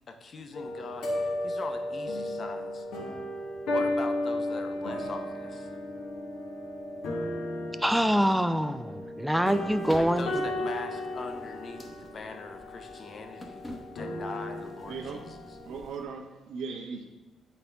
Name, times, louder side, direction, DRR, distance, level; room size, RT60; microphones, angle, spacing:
voice 1, 0.1-2.9 3.7-5.7 10.0-15.4, left 4 dB, 45° left, 6 dB, 0.7 m, -42 dB
sound 1, 0.5-15.7, left 1 dB, 85° left, 1.1 m, -34 dB
voice 2, 7.8-10.3, equal, ahead, 11 dB, 0.3 m, -25 dB
sound 2, 9.5-16.0, left 1 dB, 20° left, 0.9 m, -49 dB
voice 3, 14.9-17.0, right 5 dB, 80° right, 3 dB, 0.8 m, -39 dB
8.3 x 4.2 x 3.4 m, 1.1 s
cardioid pair, 90°, 0 cm